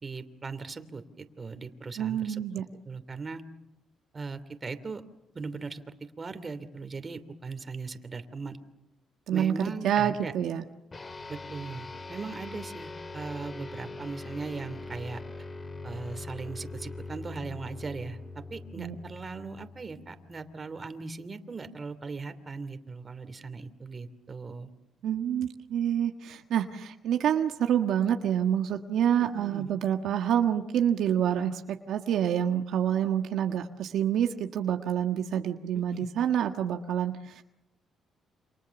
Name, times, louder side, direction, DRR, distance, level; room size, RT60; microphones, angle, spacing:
voice 1, 0.0-2.4 2.8-3.4 4.1-5.0 5.3-5.8 6.2-8.6 9.3-10.3 11.3-15.2 15.8-24.7 29.2-29.7 35.7-36.1, right 4 dB, 30° right, 10 dB, 2.8 m, -39 dB
voice 2, 2.0-2.6 9.3-9.5 9.8-10.6 18.8-18.9 25.0-37.1, right 9 dB, 75° right, 5 dB, 1.5 m, -27 dB
sound 1, 10.9-20.6, left 3 dB, 30° left, 2.2 m, -42 dB
29.0 x 27.0 x 7.2 m, 0.90 s
cardioid pair, 90°, 0 cm